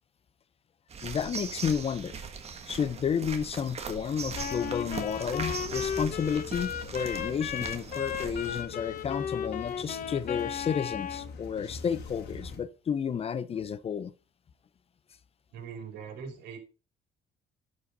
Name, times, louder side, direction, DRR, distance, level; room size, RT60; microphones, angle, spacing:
sound 1, 0.9-8.6, right 5 dB, 40° right, 1.5 m, -40 dB
voice 1, 1.0-2.2 2.7-14.1, left 7 dB, 35° left, 0.6 m, -31 dB
sound 2, 4.1-12.6, left 4 dB, 80° left, 2.4 m, -44 dB
Wind instrument woodwind instrument, 4.3-11.3, left 8 dB, 55° left, 1.0 m, -35 dB
voice 2, 15.5-16.6, right 6 dB, 80° right, 2.7 m, -41 dB
11.5 x 5.3 x 4.0 m
cardioid pair, 110°, 17 cm